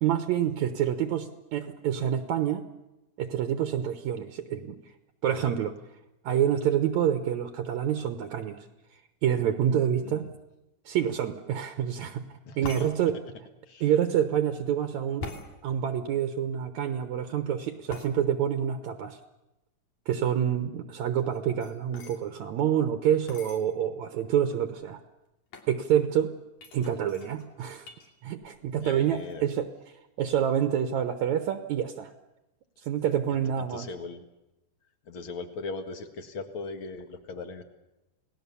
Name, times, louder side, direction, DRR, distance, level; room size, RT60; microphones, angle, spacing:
voice 1, 0.0-2.6 3.2-4.8 5.2-5.8 6.2-8.6 9.2-10.3 10.9-12.2 12.6-13.2 13.8-15.3 15.6-19.2 20.1-25.0 25.7-26.3 26.7-27.9 28.2-29.7 30.2-32.1 32.8-33.9, right 9 dB, 65° right, 7 dB, 2.3 m, -27 dB
voice 2, 12.5-12.9 13.7-13.9 28.8-29.4 33.7-34.3 35.1-37.6, left 3 dB, 45° left, 7 dB, 2.1 m, -39 dB
sound 1, 12.6-12.9 15.2-15.5 17.9-18.1 21.2-22.2 23.3-23.6 24.3-24.4 24.6-25.0 25.5-25.7 26.6-28.1 28.4-28.8 29.1-29.6, left 3 dB, 65° left, 4.1 m, -42 dB
29.0 x 18.5 x 7.0 m, 0.94 s
omnidirectional pair, 3.8 m